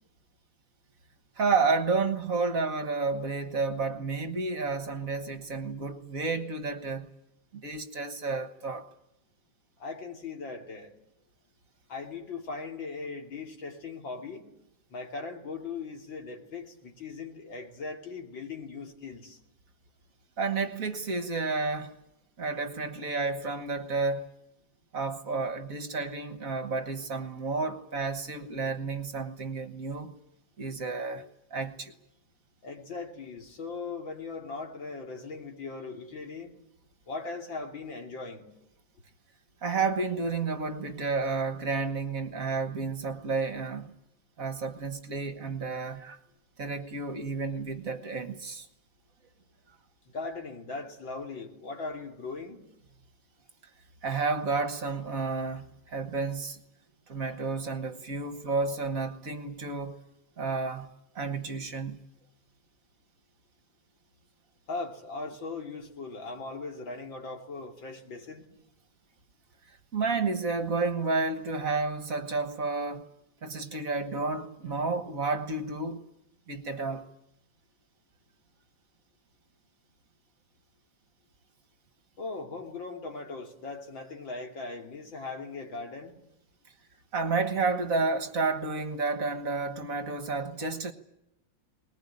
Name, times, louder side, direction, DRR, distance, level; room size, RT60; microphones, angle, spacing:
voice 1, 1.4-7.1 7.5-8.9 20.4-22.0 22.4-24.3 24.9-30.1 30.6-31.2 31.5-31.9 39.6-43.9 44.4-46.2 46.6-48.7 54.0-56.6 57.1-60.0 60.4-60.9 61.1-62.0 69.7-73.0 73.4-76.0 76.5-77.1 87.1-90.9, right 4 dB, 50° right, 1.7 m, -31 dB
voice 2, 9.8-11.0 11.9-14.5 14.9-19.4 32.6-36.5 37.1-38.5 50.1-52.6 64.7-68.5 82.2-86.2, left 3 dB, 80° left, 3.7 m, -39 dB
20.5 x 19.5 x 9.9 m
omnidirectional pair, 2.1 m